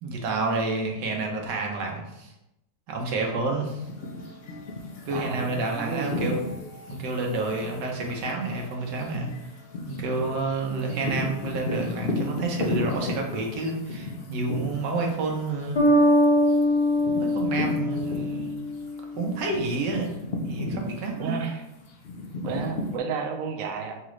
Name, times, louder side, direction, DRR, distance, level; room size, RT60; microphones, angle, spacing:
voice 1, 0.0-2.3 2.9-3.8 5.0-6.4 6.9-9.3 9.9-15.8 17.2-18.6 19.2-20.1 20.4-21.4, right 3 dB, 85° right, 1 dB, 1.4 m, -29 dB
sound 1, 3.6-18.8 19.1-23.0, left 2 dB, 80° left, 0.5 m, -35 dB
voice 2, 5.1-6.3 21.2-21.6 22.4-24.0, right 5 dB, 65° right, 2 dB, 0.9 m, -32 dB
Bass guitar, 15.8-19.3, left 1 dB, 20° left, 0.9 m, -22 dB
5.9 x 2.4 x 3.1 m, 0.88 s
omnidirectional pair, 1.8 m